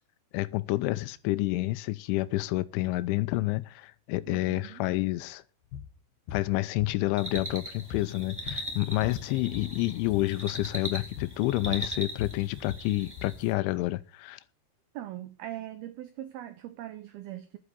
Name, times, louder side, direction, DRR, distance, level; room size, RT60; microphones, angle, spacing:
voice 1, 0.3-5.4 6.3-14.4, left 19 dB, 85° left, 3.2 m, -29 dB
voice 2, 4.3-4.8 14.9-17.6, right 13 dB, 70° right, 2.5 m, -41 dB
sound 1, 5.7-5.9 6.3-6.5 6.8-7.6 7.9-9.7 10.0-10.3 10.6-10.8 11.2-11.4 11.7-13.4, left 8 dB, 65° left, 2.5 m, -40 dB
sound 2, 7.2-13.5, equal, 5° right, 1.9 m, -40 dB
11.5 x 8.2 x 6.9 m
omnidirectional pair, 5.4 m